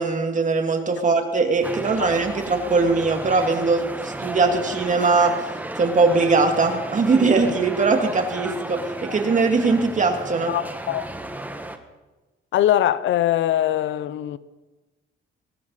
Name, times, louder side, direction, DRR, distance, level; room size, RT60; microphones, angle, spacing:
voice 1, 0.0-5.5 5.8-10.5, right 4 dB, 40° right, 2.3 m, -21 dB
sound 1, 1.6-11.8, right 1 dB, 10° right, 1.4 m, -34 dB
voice 2, 10.5-11.1 12.5-14.4, left 12 dB, 75° left, 0.8 m, -22 dB
20.0 x 14.5 x 4.1 m
cardioid pair, 90°, 20 cm